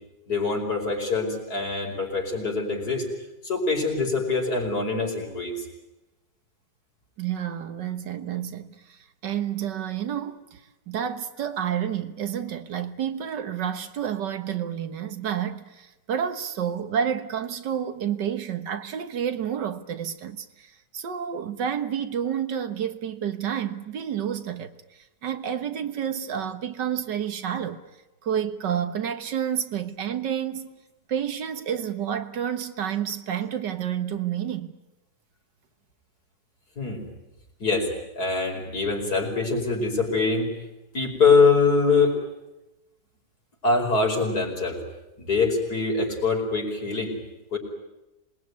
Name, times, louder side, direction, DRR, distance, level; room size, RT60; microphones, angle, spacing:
voice 1, 0.3-3.1 3.4-5.7 36.8-37.0 37.6-40.6 40.9-42.2 43.6-44.8 45.2-47.2 47.5-47.6, left 4 dB, 60° left, 5.6 m, -24 dB
voice 2, 7.2-10.6 10.9-27.8 28.2-30.7 31.1-34.8, right 9 dB, 85° right, 1.9 m, -30 dB
26.5 x 20.5 x 9.5 m
omnidirectional pair, 1.8 m